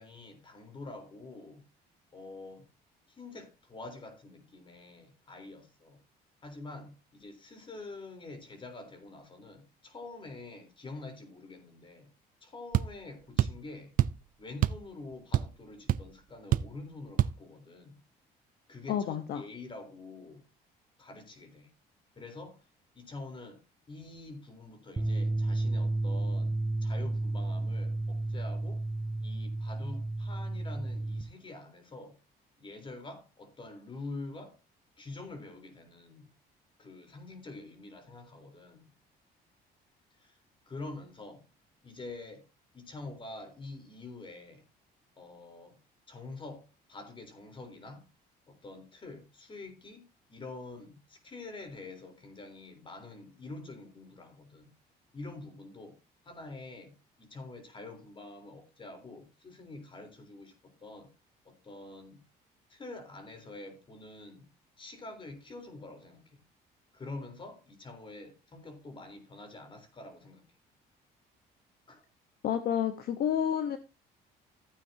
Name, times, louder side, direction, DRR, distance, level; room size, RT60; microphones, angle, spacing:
voice 1, 0.0-1.6 2.1-2.7 3.1-6.0 6.4-12.1 12.4-13.9 14.4-18.0 18.7-20.5 21.0-21.7 22.2-22.7 22.9-23.6 23.9-26.6 26.8-28.8 29.2-32.2 32.6-34.6 35.0-36.3 36.8-38.9 40.2-40.4 40.7-41.4 41.8-42.5 42.7-44.6 45.2-45.8 46.1-48.1 48.5-54.7 55.1-56.0 56.2-61.1 61.4-62.2 62.7-64.5 64.8-66.4 66.9-70.4 71.9-72.0, left 2 dB, 30° left, 3.8 m, -46 dB
sound 1, 12.7-12.9 13.4-13.6 14.0-14.2 14.6-14.9 15.1-15.6 15.9-16.0 16.5-16.8 17.2-17.4, right 12 dB, 55° right, 0.5 m, -26 dB
voice 2, 18.9-19.4 72.4-73.8, left 9 dB, 65° left, 1.1 m, -30 dB
sound 2, 25.0-31.2, right 2 dB, 15° right, 1.1 m, -32 dB
14.5 x 9.2 x 2.8 m
cardioid pair, 110°, 17 cm